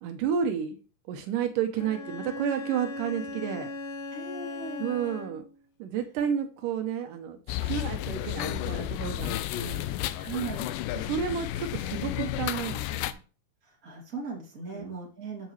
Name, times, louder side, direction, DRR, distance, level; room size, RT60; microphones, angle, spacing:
voice 1, 0.0-0.8 1.1-3.7 4.8-5.4 5.8-9.8 11.0-13.2 14.7-14.9, right 8 dB, 80° right, 6 dB, 2.3 m, -31 dB
Bowed string instrument, 1.7-5.6, left 2 dB, 65° left, 3.2 m, -38 dB
voice 2, 4.1-4.9 10.2-10.7 13.6-15.5, right 4 dB, 25° right, -1 dB, 2.7 m, -38 dB
sound 1, 7.5-13.1, left 13 dB, 90° left, 2.2 m, -32 dB
14.5 x 4.8 x 3.2 m, 0.37 s
omnidirectional pair, 3.8 m